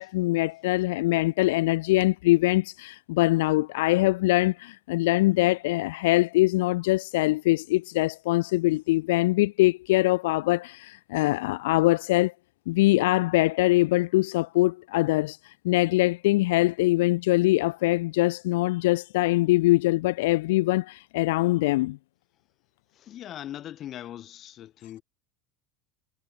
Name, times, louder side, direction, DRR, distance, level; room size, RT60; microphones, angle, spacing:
voice 1, 0.0-12.3 12.7-22.0, left 19 dB, 85° left, 0.4 m, -23 dB
voice 2, 22.9-25.0, left 12 dB, 40° left, 3.4 m, -40 dB
supercardioid pair, 135°, 0 cm